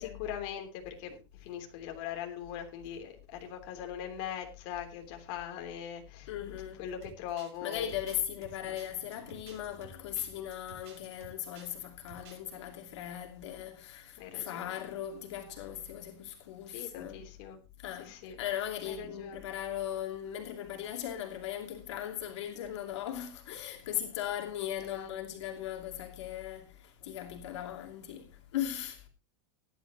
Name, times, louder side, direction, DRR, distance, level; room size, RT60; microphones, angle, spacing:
voice 1, 0.0-6.3 6.8-8.0 8.6-8.8 14.2-14.8 16.7-17.6 18.0-18.4 18.8-19.4 24.9-25.2, left 9 dB, 50° left, 3.3 m, -41 dB
voice 2, 6.3-6.8 7.6-17.2 17.8-29.0, left 11 dB, 85° left, 2.8 m, -38 dB
sound 1, 7.0-11.8 12.1-12.6, right 7 dB, 70° right, 7.2 m, -54 dB
17.0 x 11.5 x 3.0 m
supercardioid pair, 160°, 15 cm